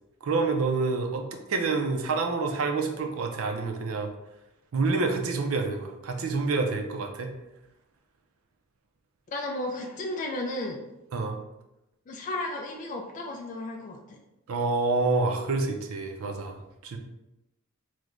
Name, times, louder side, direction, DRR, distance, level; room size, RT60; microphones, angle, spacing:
voice 1, 0.2-4.1 4.7-7.3 11.1-11.4 14.5-17.0, right 3 dB, 75° right, 4 dB, 0.5 m, -28 dB
voice 2, 9.3-10.8 12.1-14.2, left 2 dB, 35° left, 1 dB, 0.3 m, -34 dB
3.1 x 2.1 x 3.7 m, 0.93 s
head